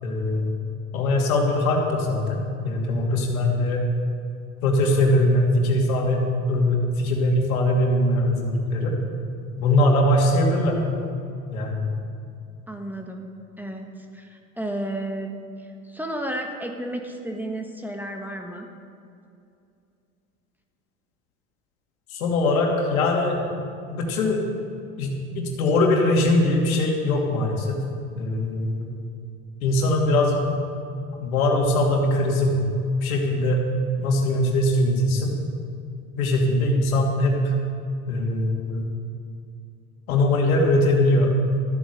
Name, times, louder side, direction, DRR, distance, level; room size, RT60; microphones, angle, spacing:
voice 1, 0.0-0.5 0.9-3.8 4.6-8.9 9.6-10.8 11.5-11.9 22.1-23.4 23.9-24.4 25.0-27.8 28.2-28.9 29.6-30.6 31.2-32.7 33.0-33.6 34.0-35.3 36.1-37.5 38.1-38.8 40.1-41.3, left 1 dB, 85° left, 0 dB, 2.7 m, -21 dB
voice 2, 12.7-13.3 13.6-18.7, right 1 dB, 5° right, 3 dB, 1.4 m, -32 dB
14.0 x 8.9 x 6.7 m, 2.5 s
hypercardioid pair, 100°, 41 cm